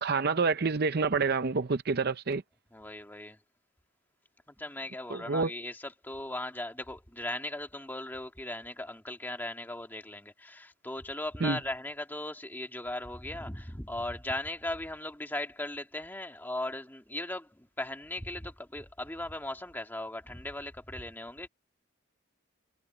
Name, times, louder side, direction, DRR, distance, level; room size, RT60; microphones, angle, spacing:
voice 1, 0.0-2.4 5.1-5.5 11.4-11.6, right 4 dB, 50° right, 0.6 m, -28 dB
voice 2, 2.7-3.4 4.5-21.5, left 1 dB, 10° left, 2.1 m, -38 dB
head